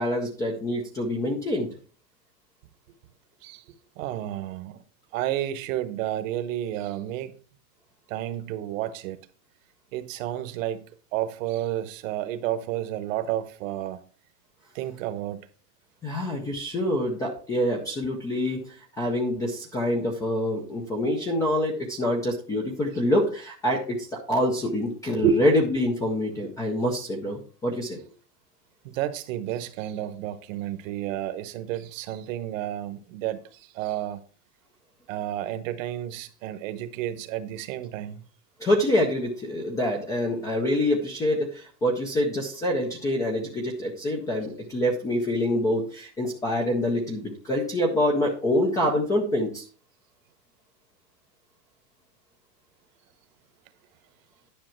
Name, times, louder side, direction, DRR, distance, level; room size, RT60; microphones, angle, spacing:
voice 1, 0.0-1.7 16.0-28.0 38.6-49.6, left 1 dB, 10° left, 0.4 m, -26 dB
voice 2, 4.0-4.8 5.1-7.3 8.1-9.2 9.9-10.9 11.1-14.0 14.7-15.4 25.2-25.3 28.8-34.2 35.1-38.2, right 11 dB, 50° right, 1.0 m, -31 dB
10.5 x 5.7 x 4.4 m
supercardioid pair, 150°, 49 cm